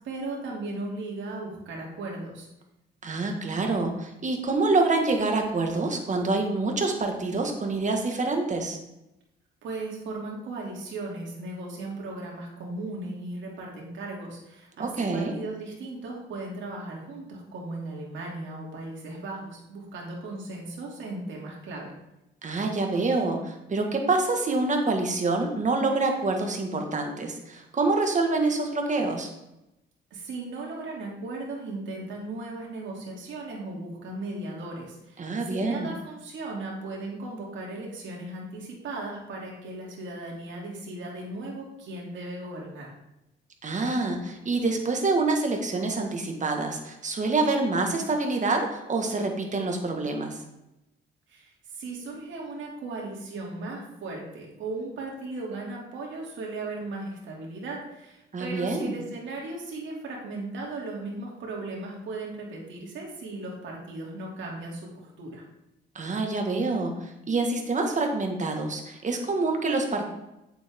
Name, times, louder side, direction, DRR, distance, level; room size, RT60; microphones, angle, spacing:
voice 1, 0.0-2.5 9.6-21.9 30.1-42.9 51.3-65.4, right 2 dB, 70° right, -2 dB, 2.9 m, -37 dB
voice 2, 3.0-8.8 14.8-15.3 22.4-29.3 35.2-35.9 43.6-50.4 58.3-59.0 66.0-70.1, right 3 dB, 40° right, 3 dB, 1.8 m, -26 dB
8.5 x 7.5 x 3.7 m, 0.91 s
cardioid pair, 90°, 20 cm